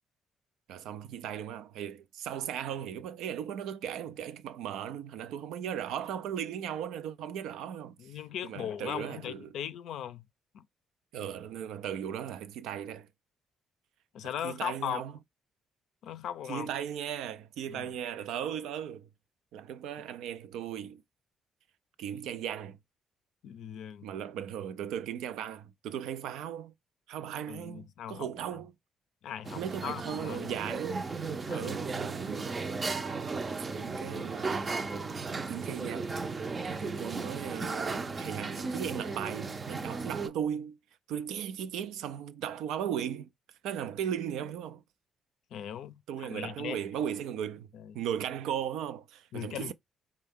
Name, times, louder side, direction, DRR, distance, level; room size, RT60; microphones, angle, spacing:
voice 1, 0.7-8.0 8.4-9.5 11.1-13.1 14.2-15.1 16.5-19.1 19.5-21.0 22.0-22.8 24.0-26.7 27.1-28.7 29.6-31.1 31.5-32.5 33.7-34.7 35.5-36.1 36.7-40.8 41.1-43.3 43.6-44.8 46.1-47.7 47.9-49.7, right 9 dB, 90° right, 0.4 m, -37 dB
voice 2, 8.0-10.2 10.5-10.7 14.1-15.0 16.0-16.7 17.7-17.9 23.4-24.1 27.5-28.6 29.2-30.5 31.5-31.8 45.5-46.8 47.7-48.0 49.3-49.7, left 10 dB, 80° left, 0.4 m, -39 dB
sound 1, 29.4-40.3, right 4 dB, 35° right, 0.5 m, -35 dB
4.5 x 2.2 x 3.5 m
cardioid pair, 90°, 0 cm